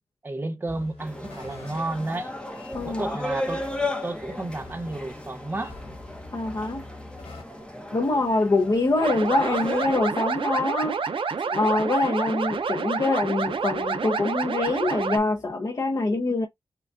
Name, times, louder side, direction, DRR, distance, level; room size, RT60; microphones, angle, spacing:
voice 1, 0.2-2.3 2.8-5.8, right 2 dB, 20° right, 0.7 m, -32 dB
sound 1, 0.6-11.0 11.6-12.8 13.1-15.5, left 2 dB, 90° left, 2.7 m, -47 dB
sound 2, 1.0-10.0, left 1 dB, 10° left, 0.9 m, -35 dB
voice 2, 2.7-3.1 6.3-6.8 7.9-11.0 11.5-16.5, left 2 dB, 40° left, 0.7 m, -24 dB
sound 3, 9.0-15.2, right 5 dB, 60° right, 0.6 m, -28 dB
6.6 x 2.4 x 2.4 m
wide cardioid pair, 165°, 10 cm